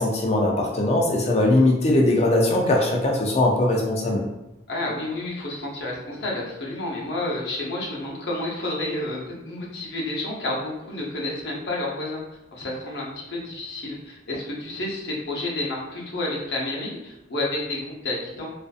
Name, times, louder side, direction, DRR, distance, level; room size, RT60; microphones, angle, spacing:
voice 1, 0.0-4.2, left 1 dB, 35° left, -1 dB, 0.4 m, -20 dB
voice 2, 4.7-12.2 12.5-18.5, left 2 dB, 60° left, -3 dB, 0.7 m, -30 dB
2.5 x 2.4 x 2.3 m, 0.95 s
head